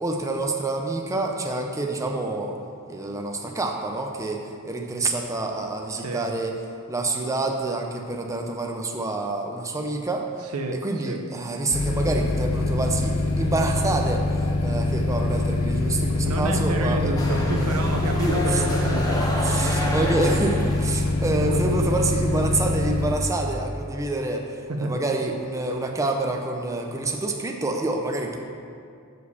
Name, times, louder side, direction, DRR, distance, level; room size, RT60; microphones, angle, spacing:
voice 1, 0.0-2.6 2.9-6.6 6.9-10.3 10.8-17.3 17.6-17.7 18.0-18.6 19.4-28.4, right 2 dB, 15° right, 2 dB, 0.5 m, -27 dB
voice 2, 6.0-6.4 10.5-11.2 16.0-19.8 21.3-21.7 24.7-25.0, right 2 dB, 90° right, 5 dB, 0.7 m, -30 dB
sound 1, 11.7-23.1, left 2 dB, 75° left, 0.7 m, -24 dB
sound 2, 17.2-21.0, equal, 15° left, 0.9 m, -29 dB
6.3 x 4.9 x 6.8 m, 2.3 s
head